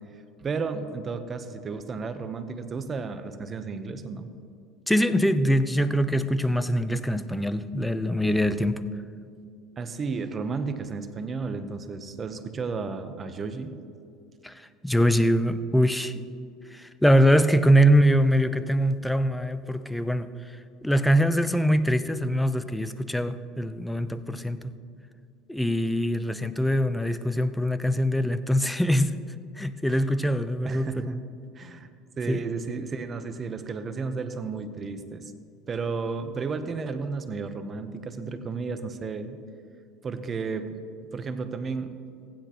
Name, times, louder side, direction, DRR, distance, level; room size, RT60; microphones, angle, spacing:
voice 1, 0.1-4.3 9.8-13.7 29.9-30.0 30.6-31.2 31.5-35.3 35.7-39.4 40.0-40.8 41.1-42.0, right 4 dB, 35° right, 10 dB, 0.9 m, -33 dB
voice 2, 4.9-8.8 14.4-16.1 16.7-20.3 20.8-24.7 25.5-29.2 29.6-31.1 32.3-32.4, equal, 5° left, 12 dB, 0.6 m, -23 dB
15.5 x 10.0 x 3.0 m, 2.4 s
hypercardioid pair, 85°, 0 cm